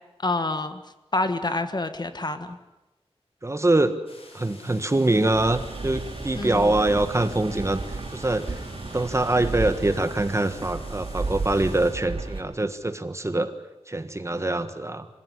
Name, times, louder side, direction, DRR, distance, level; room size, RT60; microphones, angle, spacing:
voice 1, 0.2-0.8 1.1-2.6 6.3-6.7, left 2 dB, 40° left, 9 dB, 1.6 m, -27 dB
voice 2, 3.4-4.0 4.3-8.6 8.9-13.5 13.9-15.1, right 2 dB, 25° right, 10 dB, 1.5 m, -24 dB
sound 1, 4.1-11.9, left 2 dB, 60° left, 6.1 m, -50 dB
sound 2, 5.3-12.4, right 3 dB, 55° right, 4.5 m, -34 dB
27.0 x 16.0 x 10.0 m, 1.1 s
wide cardioid pair, 95°, 11 cm